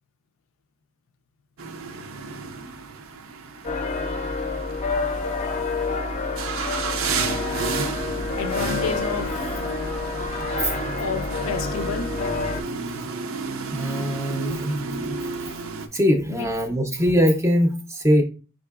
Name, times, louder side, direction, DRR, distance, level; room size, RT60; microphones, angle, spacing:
sound 1, 1.6-15.9, right 4 dB, 85° right, 0.5 m, -32 dB
sound 2, 3.6-12.6, left 3 dB, 35° left, 0.5 m, -28 dB
voice 1, 5.1-5.6 8.4-9.6 10.6-12.9 16.3-16.5, left 6 dB, 85° left, 0.4 m, -32 dB
voice 2, 13.7-15.3 15.9-18.2, equal, 15° right, 0.5 m, -22 dB
4.8 x 3.6 x 2.3 m
head